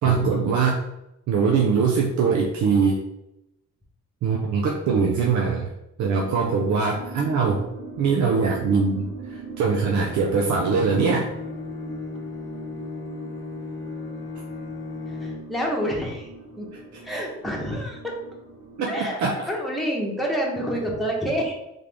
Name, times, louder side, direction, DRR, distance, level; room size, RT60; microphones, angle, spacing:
voice 1, 0.0-0.8 1.3-3.1 4.2-5.7 6.0-7.6 8.0-11.3 16.7-17.2 18.8-19.5, right 5 dB, 70° right, 0 dB, 0.6 m, -22 dB
sound 1, 6.2-18.9, right 4 dB, 50° right, 1.1 m, -41 dB
Bowed string instrument, 9.7-15.7, left 3 dB, 40° left, 0.8 m, -36 dB
voice 2, 15.1-16.3 16.6-16.7 17.0-18.0 18.9-19.2 19.5-21.5, equal, ahead, -3 dB, 1.2 m, -27 dB
3.6 x 3.4 x 3.4 m, 0.87 s
cardioid pair, 90°, 30 cm